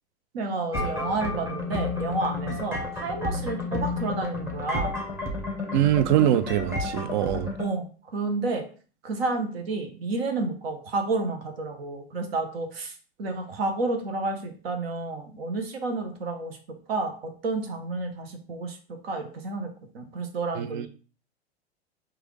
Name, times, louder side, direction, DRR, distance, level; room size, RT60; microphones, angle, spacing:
voice 1, 0.3-5.0 7.6-8.7 9.0-16.6 16.9-19.7 19.9-20.9, right 3 dB, 65° right, 0.9 m, -30 dB
sound 1, 0.7-7.7, left 2 dB, 10° right, 0.9 m, -31 dB
voice 2, 5.7-7.5 20.5-20.9, right 12 dB, 45° right, 0.4 m, -23 dB
4.7 x 2.5 x 3.1 m
figure-of-eight pair, 90°, 33 cm